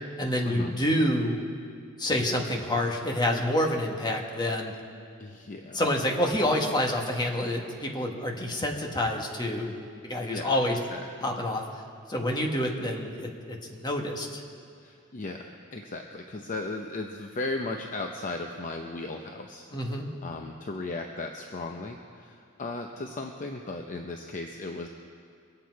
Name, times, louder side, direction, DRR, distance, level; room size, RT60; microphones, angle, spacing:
voice 1, 0.2-1.4 2.0-4.7 5.7-9.7 10.0-10.8 11.2-11.6 12.1-14.4 19.7-20.1, left 1 dB, 20° left, 1 dB, 1.4 m, -28 dB
voice 2, 5.2-5.8 10.2-11.0 14.8-19.6 20.2-24.9, left 2 dB, 40° left, 3 dB, 0.6 m, -36 dB
23.0 x 8.5 x 4.6 m, 2.3 s
head